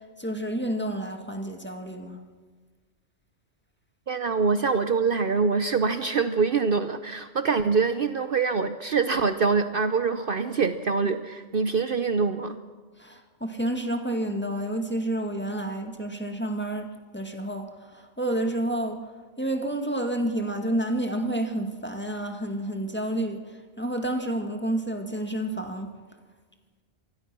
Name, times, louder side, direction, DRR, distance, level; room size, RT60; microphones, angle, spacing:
voice 1, 0.2-2.2 13.0-17.7 17.9-19.1 19.4-23.5 23.8-25.9, right 1 dB, 10° left, 1.8 m, -29 dB
voice 2, 4.1-12.6, right 5 dB, 55° right, 0.9 m, -24 dB
26.5 x 19.5 x 6.1 m
omnidirectional pair, 1.2 m